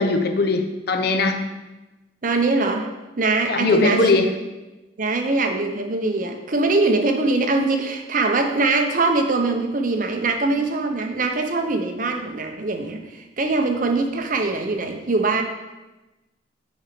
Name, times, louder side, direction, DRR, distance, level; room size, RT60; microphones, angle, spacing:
voice 1, 0.0-1.4 3.5-4.3, left 3 dB, 55° left, 6 dB, 0.7 m, -20 dB
voice 2, 2.2-2.9 3.2-4.2 5.0-15.4, right 3 dB, 45° right, 5 dB, 0.8 m, -22 dB
6.3 x 5.1 x 5.9 m, 1.1 s
head